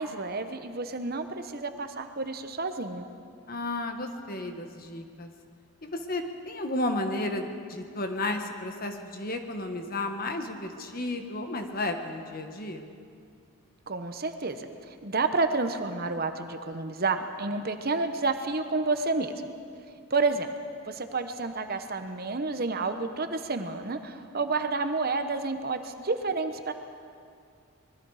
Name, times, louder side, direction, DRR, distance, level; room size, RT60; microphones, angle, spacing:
voice 1, 0.0-3.1 13.9-19.3 20.1-20.5 20.8-26.7, right 3 dB, 40° right, 8 dB, 1.0 m, -30 dB
voice 2, 3.5-5.3 5.8-12.9, left 2 dB, 40° left, 5 dB, 1.5 m, -33 dB
25.5 x 21.0 x 4.9 m, 2.3 s
head